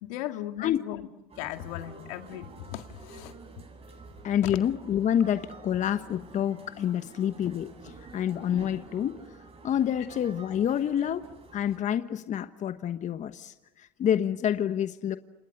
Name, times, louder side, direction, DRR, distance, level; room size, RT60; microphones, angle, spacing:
voice 1, 0.0-1.1 1.4-3.3 4.4-4.5 10.2-10.3 11.0-11.1, left 14 dB, 70° left, 7 dB, 2.0 m, -37 dB
sound 1, 1.3-11.8, right 3 dB, 30° right, 7.6 m, -49 dB
voice 2, 4.2-9.2 9.6-15.2, left 9 dB, 40° left, 10 dB, 1.2 m, -28 dB
29.5 x 27.5 x 6.7 m, 1.1 s
hypercardioid pair, 85°, 19 cm